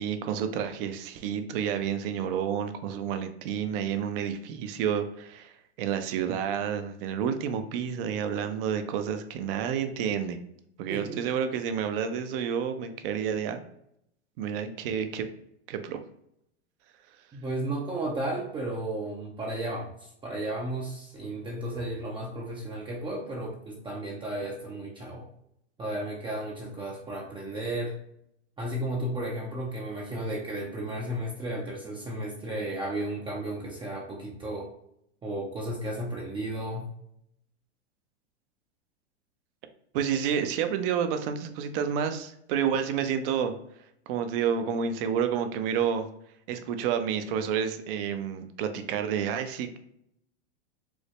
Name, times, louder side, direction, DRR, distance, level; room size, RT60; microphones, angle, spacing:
voice 1, 0.0-5.5 5.8-10.4 10.8-13.6 14.4-15.3 15.7-16.0 39.9-43.5 44.1-46.1 46.5-49.8, right 8 dB, 55° right, 8 dB, 0.6 m, -29 dB
voice 2, 10.9-11.2 17.3-25.3 25.8-28.0 28.6-34.7 35.2-36.9, right 1 dB, 15° right, -2 dB, 0.5 m, -34 dB
4.8 x 2.0 x 3.0 m, 0.75 s
hypercardioid pair, 110°, 34 cm